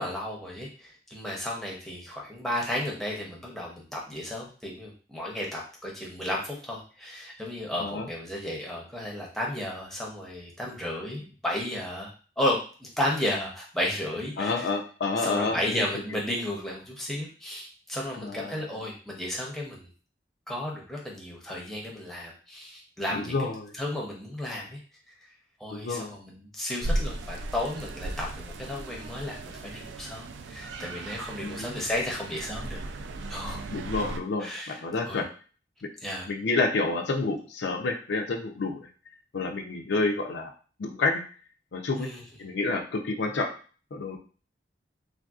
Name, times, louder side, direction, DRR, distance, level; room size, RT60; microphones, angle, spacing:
voice 1, 0.0-14.7 15.2-19.9 20.5-23.5 23.8-24.8 25.6-32.8 33.3-33.6 34.4-35.2 36.0-36.3 42.0-42.2, left 1 dB, ahead, -3 dB, 0.6 m, -33 dB
voice 2, 14.4-15.9 18.2-18.7 23.1-23.7 25.7-26.2 31.4-31.8 33.7-35.2 36.3-38.8 39.3-40.5 40.8-41.2 41.7-42.1 42.4-43.5 43.9-44.2, left 3 dB, 75° left, 3 dB, 0.5 m, -29 dB
sound 1, 26.8-34.2, right 2 dB, 85° right, 0.3 m, -36 dB
3.3 x 2.5 x 2.3 m, 0.39 s
head